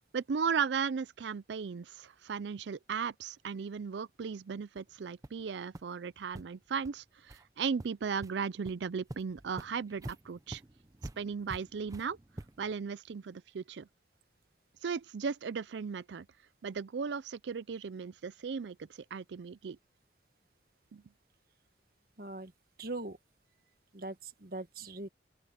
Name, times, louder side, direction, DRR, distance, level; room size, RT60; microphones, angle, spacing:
voice 1, 0.1-10.6 11.2-12.2 12.6-13.9 14.8-16.3 16.6-19.8 20.9-21.0, right 6 dB, 75° right, 0.4 m, -36 dB
sound 1, 4.8-4.9 5.2-5.4 5.7-5.8 6.3-6.4 6.8-6.9 7.3-7.4 7.8-8.3 8.7-8.8 9.1-12.7, right 1 dB, 20° right, 0.5 m, -46 dB
voice 2, 22.2-22.5 22.8-23.2 23.9-25.1, right 2 dB, 55° right, 1.4 m, -41 dB
open air
head